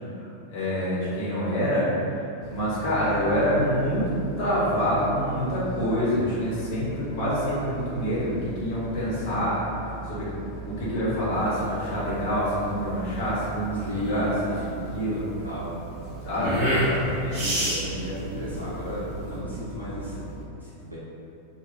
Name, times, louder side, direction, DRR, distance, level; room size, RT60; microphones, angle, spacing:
voice 1, 0.2-9.6 10.1-10.2 10.7-15.2 16.2-16.6, equal, 45° left, -8 dB, 1.0 m, -26 dB
sound 1, 2.4-20.5, right 5 dB, 20° right, 1.0 m, -40 dB
sound 2, 11.3-19.4, equal, 45° right, 0.9 m, -30 dB
voice 2, 13.8-14.8 15.1-15.7 16.7-21.0, equal, 90° left, -10 dB, 0.5 m, -34 dB
2.4 x 2.2 x 3.1 m, 2.6 s
figure-of-eight pair, 90°, 0 cm